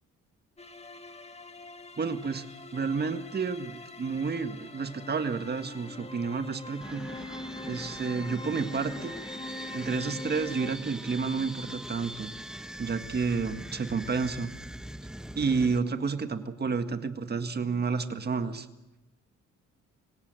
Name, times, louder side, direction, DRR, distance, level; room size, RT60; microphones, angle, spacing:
sound 1, 0.6-10.8, left 2 dB, 20° left, 1.7 m, -44 dB
voice 1, 2.0-2.4 2.7-7.4 7.7-9.1 9.7-12.3 12.8-14.5 15.3-18.7, right 5 dB, 35° right, 8 dB, 1.8 m, -30 dB
sound 2, 6.8-15.8, equal, ahead, 1.0 m, -41 dB
25.5 x 17.0 x 7.7 m, 1.0 s
cardioid pair, 90°, 30 cm